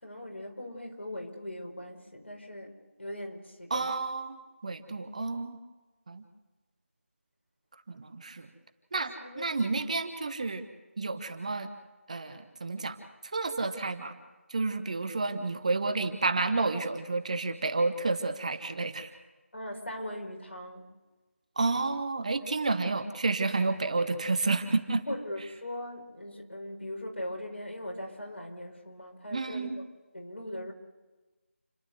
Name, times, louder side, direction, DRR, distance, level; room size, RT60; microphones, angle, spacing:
voice 1, 0.0-2.7 3.0-3.9 8.9-9.5 9.7-9.9 19.5-20.9 25.1-29.8 30.1-30.7, left 1 dB, 55° left, 1 dB, 5.1 m, -40 dB
voice 2, 3.7-5.6 6.1-6.2 7.9-8.5 8.9-10.7 11.0-11.7 12.1-13.0 13.3-14.1 14.5-19.1 21.6-25.0 29.3-29.7, right 3 dB, 30° right, 9 dB, 1.1 m, -30 dB
29.5 x 11.5 x 8.1 m, 1.2 s
figure-of-eight pair, 165°, 7 cm